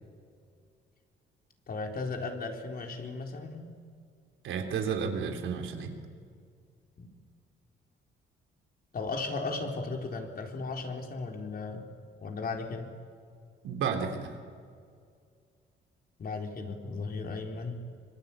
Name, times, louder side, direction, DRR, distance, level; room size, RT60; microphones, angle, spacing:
voice 1, 1.7-3.7 7.0-7.1 8.9-11.9 12.2-12.9 16.2-17.8, left 3 dB, 50° left, 3 dB, 4.1 m, -36 dB
voice 2, 4.4-5.9 13.6-14.4, right 6 dB, 80° right, 4 dB, 3.3 m, -32 dB
25.5 x 23.0 x 8.7 m, 2.2 s
cardioid pair, 90°, 20 cm